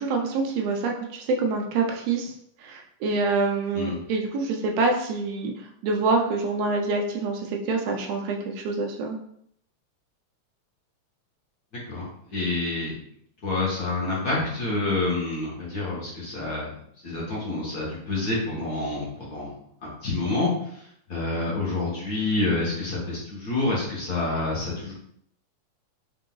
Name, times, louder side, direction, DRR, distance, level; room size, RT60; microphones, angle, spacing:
voice 1, 0.0-2.3 2.6-5.5 5.8-9.2, right 3 dB, 75° right, 2 dB, 1.6 m, -26 dB
voice 2, 11.9-12.9 13.4-16.7 17.0-19.5 19.8-24.9, left 2 dB, 70° left, -6 dB, 0.9 m, -28 dB
4.6 x 3.8 x 2.3 m, 0.69 s
omnidirectional pair, 3.3 m